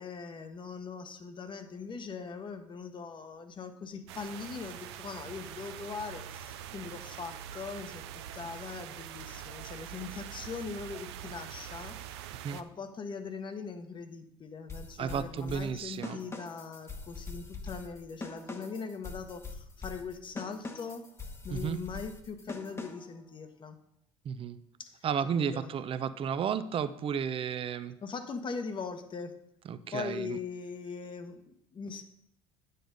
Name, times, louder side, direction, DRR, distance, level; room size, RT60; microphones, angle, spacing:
voice 1, 0.0-8.0 8.3-21.0 21.4-23.8 24.8-25.0 25.3-25.7 28.0-29.4 29.9-32.0, left 5 dB, 35° left, 8 dB, 1.1 m, -41 dB
sound 1, 4.1-12.6, right 10 dB, 85° right, 0.5 m, -44 dB
sound 2, 14.7-23.2, left 3 dB, 20° left, 1.1 m, -43 dB
voice 2, 15.0-16.2 21.5-21.8 24.2-24.6 25.0-27.9 29.6-30.4, right 7 dB, 45° right, 13 dB, 0.6 m, -33 dB
9.1 x 6.7 x 4.0 m, 0.73 s
hypercardioid pair, 75°, 14 cm